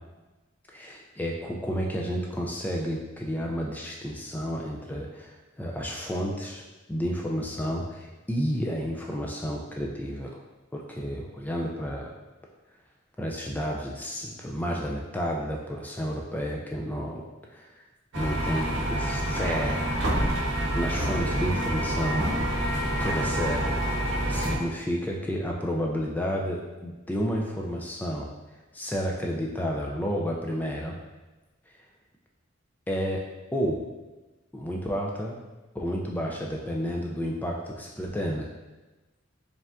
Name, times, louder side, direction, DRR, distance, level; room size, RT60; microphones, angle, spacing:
voice 1, 0.7-6.6 6.9-10.4 10.7-12.1 13.2-17.2 17.5-17.8 18.1-19.9 20.7-22.3 23.0-23.8 24.0-28.3 28.7-31.0 32.9-33.2 33.5-33.8 34.5-35.4 35.7-38.5, equal, 10° left, -1 dB, 0.3 m, -31 dB
sound 1, 18.1-24.6, right 1 dB, 65° right, 0.7 m, -27 dB
4.9 x 3.4 x 2.5 m, 1.2 s
head